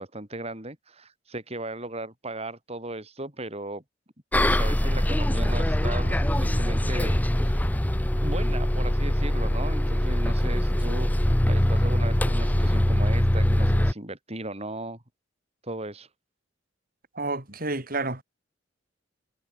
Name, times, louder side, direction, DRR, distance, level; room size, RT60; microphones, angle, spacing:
voice 1, 0.0-3.8 4.3-7.6 8.2-15.0 15.6-16.1, right 2 dB, 30° right, 4.8 m, -37 dB
Bus, 4.3-13.9, left 1 dB, 10° left, 0.7 m, -23 dB
voice 2, 17.1-18.2, right 2 dB, 45° right, 4.5 m, -30 dB
head